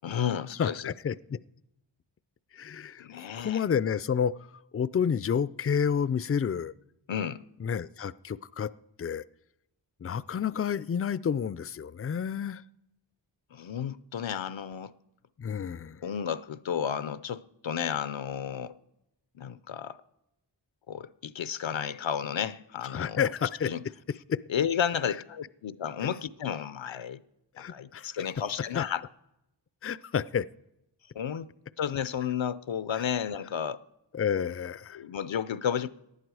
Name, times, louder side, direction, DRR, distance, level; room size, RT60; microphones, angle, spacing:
voice 1, 0.0-0.9 3.0-3.6 7.1-7.4 13.5-14.9 16.0-18.8 19.3-20.0 20.9-23.3 23.6-23.8 24.5-27.2 27.6-29.0 31.1-31.5 31.8-33.8 34.9-35.9, left 8 dB, 80° left, 0.6 m, -32 dB
voice 2, 0.6-1.4 2.5-4.3 4.7-6.7 7.6-8.7 9.0-9.2 10.0-12.6 15.4-16.0 22.9-23.7 24.3-24.4 27.6-28.1 28.7-28.8 29.8-30.5 34.1-35.0, left 7 dB, 30° left, 0.4 m, -30 dB
18.5 x 11.0 x 4.8 m
wide cardioid pair, 45°, 46 cm